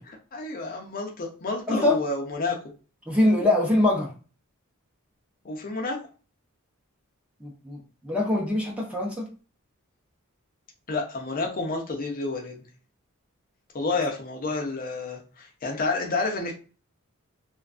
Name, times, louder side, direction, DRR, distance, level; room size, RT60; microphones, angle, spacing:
voice 1, 0.1-2.6 5.4-6.0 10.9-12.5 13.7-16.5, left 3 dB, 40° left, 0 dB, 0.5 m, -29 dB
voice 2, 3.1-4.1 7.4-9.3, left 1 dB, 5° right, -2 dB, 0.6 m, -23 dB
2.5 x 2.3 x 2.4 m, 0.37 s
head